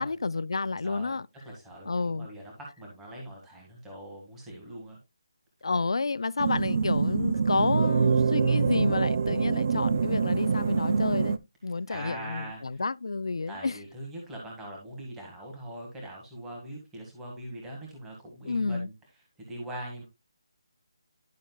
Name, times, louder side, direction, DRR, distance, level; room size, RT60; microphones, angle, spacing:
voice 1, 0.0-1.3 1.9-2.3 5.6-13.8 18.5-18.9, left 3 dB, 75° left, 0.4 m, -30 dB
voice 2, 0.8-1.2 1.4-5.0 11.9-12.8 13.5-18.9 19.4-20.0, right 1 dB, 5° right, 1.7 m, -42 dB
sound 1, 6.4-11.4, right 5 dB, 25° right, 0.3 m, -25 dB
11.0 x 6.4 x 2.2 m
hypercardioid pair, 180°, 3 cm